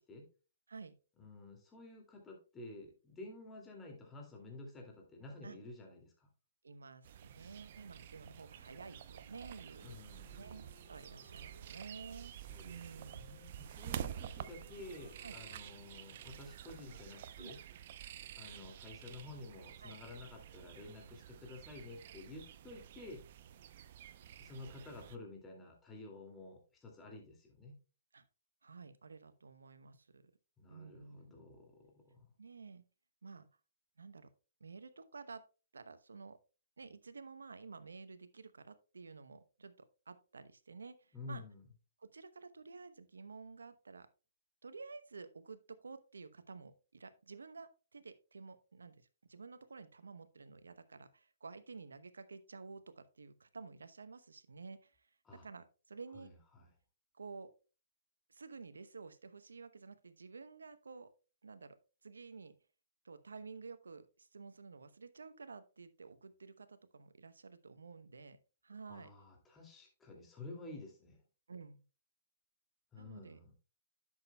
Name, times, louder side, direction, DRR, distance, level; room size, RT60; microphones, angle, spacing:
voice 1, 1.2-6.3 9.8-10.4 12.5-17.6 18.4-23.2 24.4-27.8 30.6-32.3 41.1-41.7 55.2-55.5 56.1-56.7 68.9-71.2 72.9-73.5, left 2 dB, 15° left, 1 dB, 2.4 m, -51 dB
voice 2, 6.6-10.0 10.4-12.3 12.6-13.3 15.2-15.3 17.4-17.5 19.8-20.0 28.1-28.2 28.6-30.3 30.7-31.5 32.4-32.8 33.2-33.5 34.0-34.3 34.6-35.4 35.7-36.4 36.8-39.7 40.1-41.4 42.0-44.1 44.6-56.3 57.1-57.5 58.3-61.1 61.4-61.8 62.0-62.5 63.0-68.4 68.6-69.1 71.5-71.9 73.0-73.4, right 4 dB, 85° right, 12 dB, 0.9 m, -52 dB
sound 1, 7.0-25.2, right 10 dB, 50° right, 0.6 m, -50 dB
sound 2, 8.4-17.1, left 4 dB, 80° left, 2.9 m, -67 dB
10.5 x 7.3 x 2.2 m, 0.34 s
hypercardioid pair, 130°, 0 cm